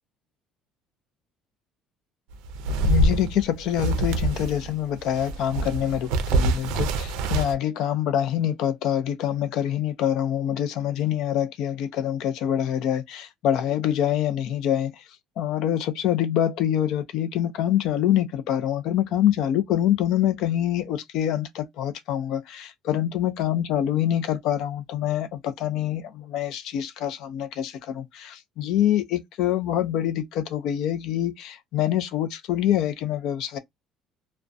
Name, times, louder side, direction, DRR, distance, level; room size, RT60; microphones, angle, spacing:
sound 1, 2.3-4.7 5.0-7.5, right 2 dB, 85° right, 0.4 m, -25 dB
voice 1, 2.8-15.0 15.4-33.6, left 11 dB, 60° left, 0.4 m, -25 dB
2.3 x 2.1 x 2.5 m
cardioid pair, 170°, 0 cm